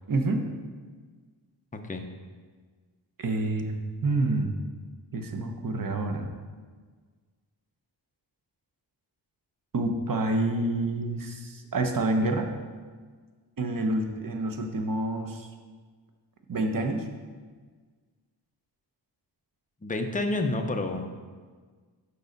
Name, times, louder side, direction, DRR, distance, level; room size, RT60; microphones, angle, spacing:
voice 1, 0.1-0.4 3.2-3.7 4.0-4.5 5.1-6.3 9.7-12.5 13.6-15.5 16.5-17.0, right 2 dB, 50° right, 4 dB, 0.9 m, -28 dB
voice 2, 19.8-21.0, left 2 dB, 20° left, 4 dB, 0.6 m, -28 dB
6.5 x 5.5 x 5.2 m, 1.5 s
wide cardioid pair, 125°, 44 cm